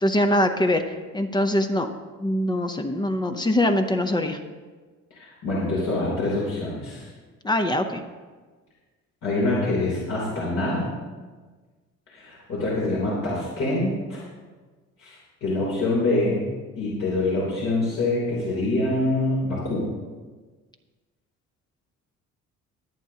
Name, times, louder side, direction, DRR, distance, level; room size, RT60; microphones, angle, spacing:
voice 1, 0.0-1.9 2.2-4.4 7.4-8.0, left 1 dB, 15° left, 7 dB, 0.6 m, -23 dB
voice 2, 5.1-7.1 9.2-10.9 12.1-14.2 15.0-16.5 16.8-19.9, left 2 dB, 65° left, -6 dB, 3.1 m, -25 dB
23.0 x 8.1 x 2.8 m, 1.4 s
cardioid pair, 145°, 29 cm